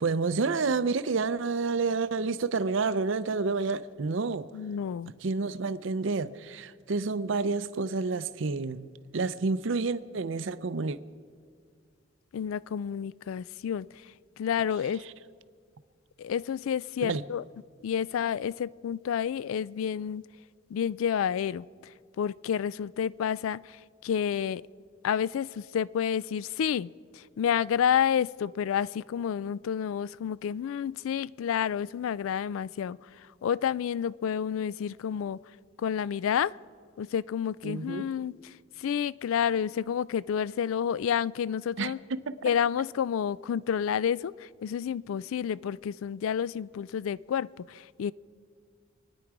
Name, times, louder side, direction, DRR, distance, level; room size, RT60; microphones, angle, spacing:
voice 1, 0.0-4.5 5.2-11.0 17.0-17.2 37.6-38.1 41.8-42.4, right 4 dB, 65° right, 15 dB, 0.5 m, -29 dB
voice 2, 4.5-5.1 12.3-15.0 16.2-17.4 17.8-20.2 20.7-21.7 22.2-24.6 25.0-35.4 35.8-36.5 37.0-42.0 42.4-48.1, left 8 dB, 75° left, 21 dB, 0.3 m, -30 dB
26.5 x 9.9 x 4.7 m, 2.1 s
head